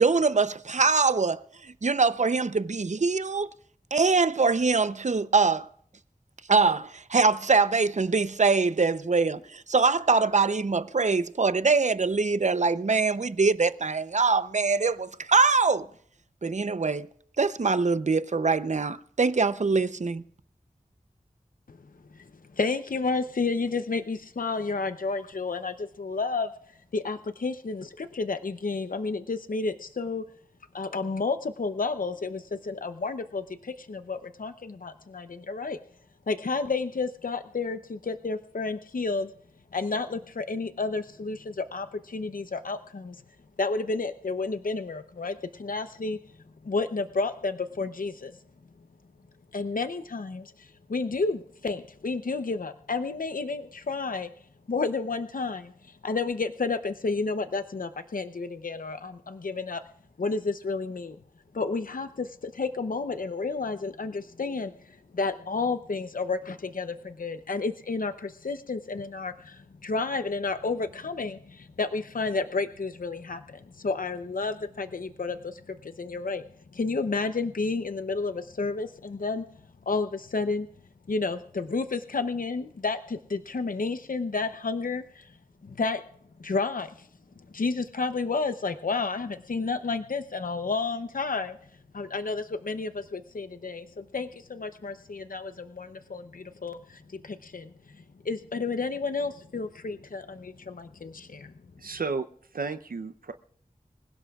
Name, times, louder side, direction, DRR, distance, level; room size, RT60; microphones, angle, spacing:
voice 1, 0.0-3.5 3.9-5.7 6.5-15.9 16.4-17.1 17.4-20.2, right 4 dB, 55° right, 0.7 m, -23 dB
voice 2, 22.5-26.5 26.9-30.2 30.7-35.8 36.3-39.3 39.7-43.2 43.6-46.2 46.6-48.3 49.5-54.3 54.7-59.8 60.2-61.2 61.5-76.4 76.7-79.4 79.9-80.7 81.1-85.3 85.6-86.0 86.4-87.1 87.5-91.6 91.9-97.7 98.2-101.5, left 3 dB, 75° left, 0.7 m, -31 dB
voice 3, 101.8-102.2 102.5-103.3, right 4 dB, 90° right, 0.7 m, -32 dB
26.0 x 16.5 x 2.4 m
wide cardioid pair, 65°, 14 cm